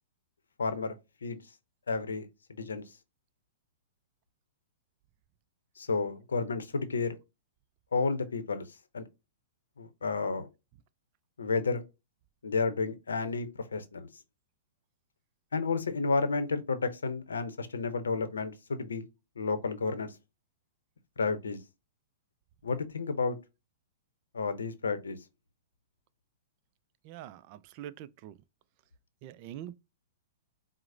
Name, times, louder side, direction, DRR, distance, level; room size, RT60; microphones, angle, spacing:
voice 1, 0.6-0.9 1.2-1.4 1.9-2.8 5.8-7.2 7.9-8.6 8.9-9.1 9.8-10.5 11.4-11.8 12.4-14.1 15.5-19.1 19.4-20.1 21.2-21.6 22.6-23.4 24.3-25.2, left 4 dB, 90° left, 0.6 m, -31 dB
voice 2, 27.0-28.4 29.2-29.8, right 12 dB, 45° right, 0.3 m, -44 dB
4.7 x 2.0 x 2.5 m
hypercardioid pair, 125°, 0 cm